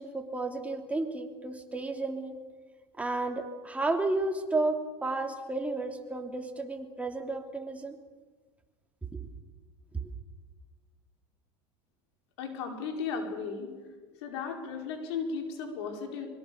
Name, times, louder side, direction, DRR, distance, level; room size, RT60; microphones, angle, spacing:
voice 1, 0.0-2.4 3.0-8.0 9.0-9.3 10.0-10.1, right 2 dB, 10° right, 3 dB, 3.2 m, -32 dB
voice 2, 12.4-13.7 14.2-16.3, left 5 dB, 80° left, 3 dB, 4.9 m, -35 dB
24.5 x 23.0 x 7.1 m, 1.4 s
supercardioid pair, 110°, 14 cm